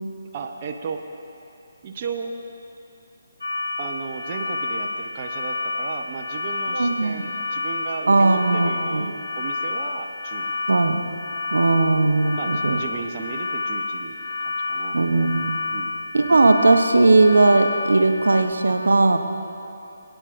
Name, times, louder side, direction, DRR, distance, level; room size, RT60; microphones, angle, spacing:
voice 1, 0.3-1.0 1.8-2.3 3.8-10.5 12.3-15.0 15.7-16.0, right 5 dB, 35° right, 2 dB, 0.7 m, -34 dB
sound 1, 3.4-18.4, left 3 dB, 80° left, 1.6 m, -29 dB
voice 2, 6.7-7.1 8.1-9.1 10.7-11.0 11.5-12.8 14.9-15.6 16.1-19.2, right 3 dB, 75° right, 6 dB, 0.7 m, -18 dB
25.0 x 9.0 x 2.5 m, 2.8 s
figure-of-eight pair, 150°, 0 cm